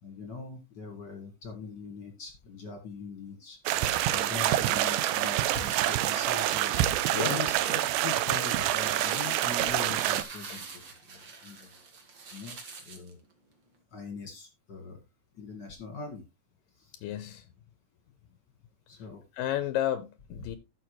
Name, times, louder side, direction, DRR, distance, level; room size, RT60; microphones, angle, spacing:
voice 1, 0.0-3.6 4.1-6.8 7.2-10.7 11.4-11.7 12.3-12.6 12.8-13.2 13.9-15.0 15.4-16.2 16.8-16.9 18.9-19.2 20.4-20.5, left 4 dB, 40° left, 1.8 m, -41 dB
sound 1, 3.7-10.2, right 13 dB, 80° right, 2.1 m, -27 dB
sound 2, 7.2-13.1, right 4 dB, 40° right, 1.9 m, -45 dB
voice 2, 16.9-17.5 19.4-20.6, left 12 dB, 80° left, 2.3 m, -32 dB
13.5 x 6.5 x 3.1 m
omnidirectional pair, 4.1 m